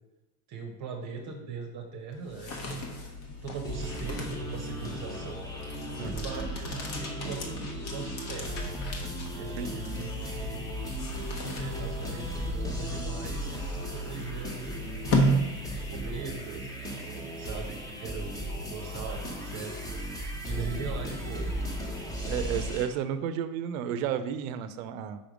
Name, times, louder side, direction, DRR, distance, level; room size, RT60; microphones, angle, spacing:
voice 1, 0.5-2.9 3.4-5.4 5.7-5.8 6.0-8.8 9.4-10.7 11.5-15.0 15.6-20.0 20.4-21.5, right 5 dB, 40° right, 3 dB, 0.8 m, -41 dB
sound 1, 2.1-16.2, equal, 55° left, 1.2 m, -34 dB
sound 2, 3.6-22.9, right 1 dB, 10° left, 0.8 m, -36 dB
voice 2, 20.6-20.9 22.3-25.2, right 9 dB, 65° right, 11 dB, 0.6 m, -32 dB
5.4 x 3.4 x 5.0 m, 1.0 s
supercardioid pair, 120°, 46 cm